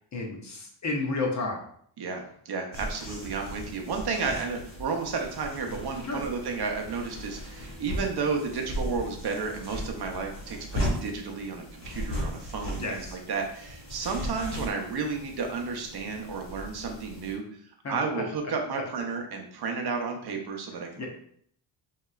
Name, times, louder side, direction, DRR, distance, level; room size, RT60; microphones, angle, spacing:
voice 1, 0.1-1.6 6.0-6.2 12.8-13.2 17.8-18.2 21.0-21.1, left 3 dB, 40° left, 1 dB, 0.6 m, -31 dB
voice 2, 2.0-17.6 17.9-21.1, right 4 dB, 60° right, 2 dB, 0.6 m, -32 dB
sound 1, 2.7-17.3, equal, 60° left, 1.4 m, -37 dB
3.1 x 2.8 x 2.3 m, 0.63 s
wide cardioid pair, 140°, 46 cm